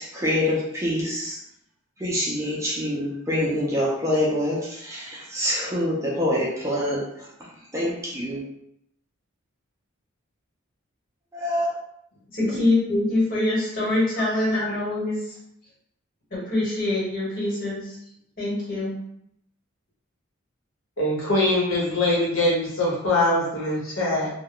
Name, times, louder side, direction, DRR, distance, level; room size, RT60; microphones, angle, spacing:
voice 1, 0.0-1.4 2.0-7.3 7.7-8.4 11.3-11.8, left 1 dB, 15° right, -6 dB, 0.5 m, -26 dB
voice 2, 12.3-15.4 16.3-18.0 18.4-19.0, left 2 dB, 45° left, -7 dB, 1.3 m, -24 dB
voice 3, 21.0-24.3, left 1 dB, 75° left, -5 dB, 1.0 m, -23 dB
2.2 x 2.2 x 3.6 m, 0.75 s
head